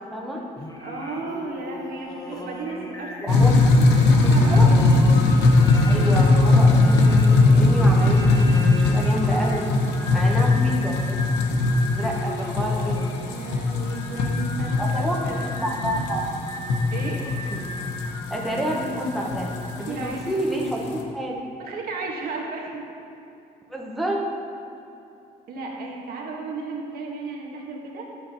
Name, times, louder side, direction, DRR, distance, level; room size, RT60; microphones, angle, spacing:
voice 1, 0.1-0.4 3.2-3.5 3.8-3.9 4.2-4.7 5.9-9.7 10.1-11.2 11.8-13.0 14.8-15.2 15.6-16.3 17.5-17.6 18.3-19.5 19.8-21.4 23.7-24.2, equal, ahead, -3 dB, 1.1 m, -29 dB
Singing, 0.6-20.2, left 1 dB, 20° left, 1.0 m, -37 dB
voice 2, 0.8-3.5 3.8-4.8 10.0-10.7 13.3-15.5 16.9-17.2 19.9-20.3 21.6-22.8 25.5-28.1, right 3 dB, 65° right, -1 dB, 1.7 m, -34 dB
sound 1, 3.3-21.0, left 2 dB, 90° left, 0.9 m, -19 dB
11.0 x 8.5 x 3.0 m, 2.7 s
cardioid pair, 110°, 17 cm